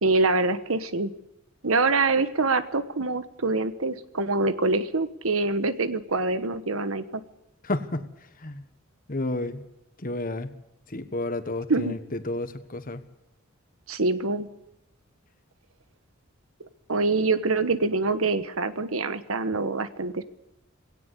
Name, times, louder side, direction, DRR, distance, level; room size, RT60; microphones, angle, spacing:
voice 1, 0.0-1.1 1.6-7.2 11.7-11.9 13.9-14.5 16.9-20.2, right 3 dB, 85° right, 12 dB, 1.3 m, -25 dB
voice 2, 7.6-8.1 8.4-8.6 9.1-9.6 10.0-10.5 10.9-13.0, left 2 dB, 40° left, 10 dB, 1.5 m, -31 dB
18.0 x 17.5 x 8.3 m, 0.87 s
head